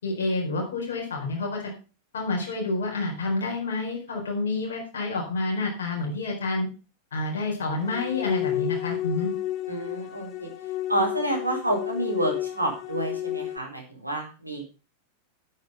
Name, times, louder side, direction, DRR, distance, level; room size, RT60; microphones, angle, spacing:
voice 1, 0.0-1.7 2.1-6.7 7.1-9.3, left 3 dB, 65° left, -1 dB, 4.4 m, -28 dB
sound 1, 7.8-13.6, left 13 dB, 35° left, 1.2 m, -31 dB
voice 2, 9.7-10.5 10.9-14.6, right 1 dB, 85° right, 1 dB, 4.4 m, -29 dB
9.3 x 9.3 x 5.6 m, 0.33 s
figure-of-eight pair, 90°, 0 cm